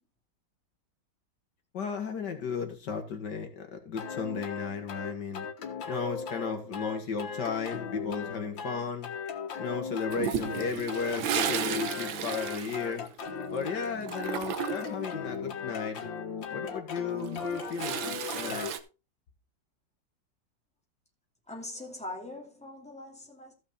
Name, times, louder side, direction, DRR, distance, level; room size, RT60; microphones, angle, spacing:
voice 1, 1.7-5.5 5.8-9.1 9.6-13.1 13.5-16.1 16.5-18.7, left 5 dB, 65° left, 2.0 m, -35 dB
sound 1, 4.0-18.7, left 6 dB, 85° left, 2.1 m, -38 dB
Toilet flush, 10.1-13.6 13.8-15.0 17.1-18.8, right 8 dB, 90° right, 1.7 m, -34 dB
voice 2, 21.5-23.5, left 2 dB, 5° left, 2.6 m, -42 dB
14.5 x 6.1 x 4.2 m
omnidirectional pair, 2.0 m